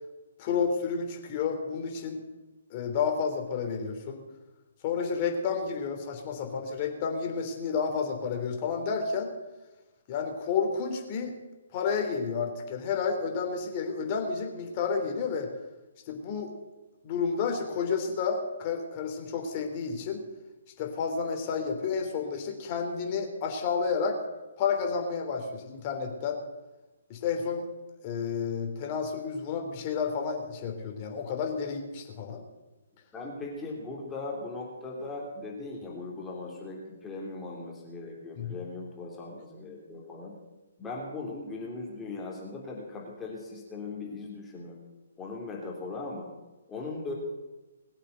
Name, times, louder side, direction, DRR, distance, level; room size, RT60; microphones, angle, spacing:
voice 1, 0.4-2.2 2.7-4.2 4.8-9.3 10.1-11.3 11.7-15.5 16.1-16.5 17.0-20.2 20.8-24.2 24.6-26.4 27.1-27.6 28.0-32.4 38.4-38.6, left 5 dB, 30° left, 3 dB, 3.3 m, -31 dB
voice 2, 33.1-40.4 40.8-44.8 45.2-46.3 46.7-47.1, left 3 dB, 10° left, -3 dB, 3.3 m, -39 dB
21.0 x 8.4 x 8.0 m, 1.1 s
figure-of-eight pair, 130°, 0 cm